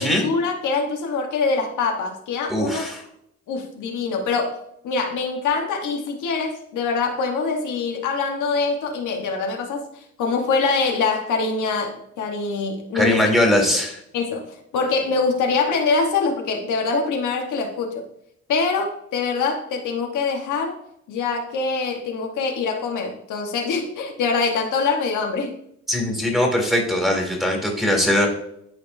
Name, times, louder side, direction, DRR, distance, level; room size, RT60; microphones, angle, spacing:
voice 1, 0.0-2.9 3.5-13.3 14.1-18.0 18.5-20.8 21.1-25.5, left 4 dB, 80° left, 2 dB, 1.2 m, -24 dB
voice 2, 2.5-3.0 12.9-14.0 25.9-28.3, left 1 dB, ahead, -1 dB, 2.3 m, -20 dB
12.0 x 4.3 x 2.6 m, 0.73 s
cardioid pair, 90°, 30 cm